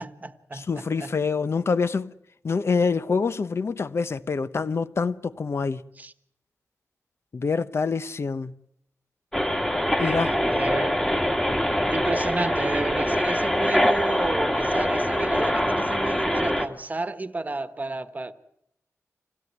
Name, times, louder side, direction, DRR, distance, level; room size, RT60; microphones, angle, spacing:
voice 1, 0.0-1.1 6.0-6.1 10.0-11.0 11.9-18.3, right 3 dB, 30° right, 1.3 m, -32 dB
voice 2, 0.5-2.1 2.4-5.8 7.3-8.5 9.9-10.3, left 5 dB, 50° left, 0.9 m, -26 dB
sound 1, 9.3-16.7, equal, 10° left, 2.0 m, -24 dB
26.0 x 17.0 x 9.4 m
wide cardioid pair, 135°, 6 cm